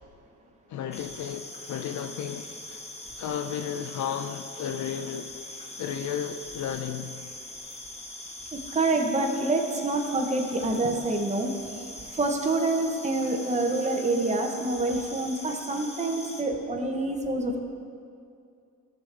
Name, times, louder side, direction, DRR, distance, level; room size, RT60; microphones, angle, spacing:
voice 1, 0.7-2.8 3.2-5.3 5.8-7.1, left 8 dB, 70° left, 8 dB, 0.5 m, -33 dB
sound 1, 0.9-16.4, left 2 dB, 20° left, 1.2 m, -42 dB
voice 2, 8.5-11.5 12.2-17.6, right 2 dB, 25° right, 2 dB, 1.0 m, -27 dB
14.0 x 6.5 x 3.4 m, 2.4 s
cardioid pair, 90°, 30 cm